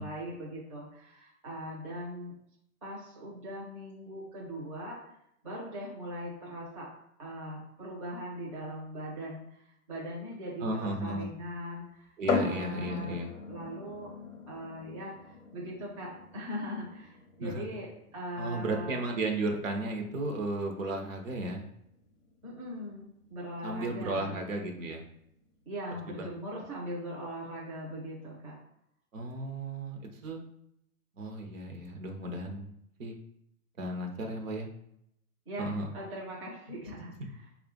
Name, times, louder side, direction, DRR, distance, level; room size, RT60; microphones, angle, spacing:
voice 1, 0.0-2.3 2.8-5.1 5.4-6.9 7.2-14.1 14.5-19.0 22.4-24.3 25.7-28.6 35.5-37.5, equal, 20° right, -6 dB, 0.6 m, -40 dB
voice 2, 10.6-11.3 12.2-13.3 17.4-17.6 18.4-21.6 23.6-25.0 26.1-26.2 26.5-26.6 29.1-30.4 31.2-32.7 33.0-33.1 33.8-34.7 35.6-35.9, right 2 dB, 55° right, 3 dB, 0.8 m, -34 dB
sound 1, 12.3-25.8, left 5 dB, 55° left, 0.6 m, -40 dB
3.7 x 2.4 x 3.6 m, 0.75 s
hypercardioid pair, 170°, 46 cm